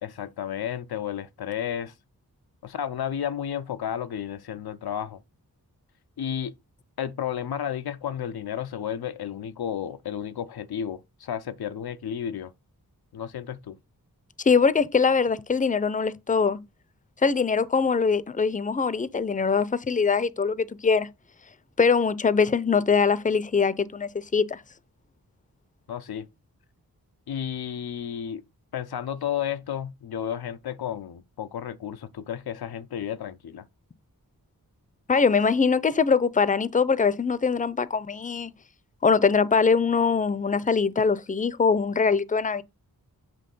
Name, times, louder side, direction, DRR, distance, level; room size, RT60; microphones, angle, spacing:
voice 1, 0.0-1.9 2.6-5.2 6.2-6.6 7.0-12.5 13.1-13.8 25.9-26.3 27.3-28.4 28.7-33.7, left 9 dB, 90° left, 0.6 m, -32 dB
voice 2, 14.4-16.6 17.2-21.1 21.8-24.6 35.1-38.5 39.0-42.6, left 5 dB, 20° left, 0.5 m, -22 dB
7.7 x 3.1 x 5.3 m
wide cardioid pair, 60°, 36 cm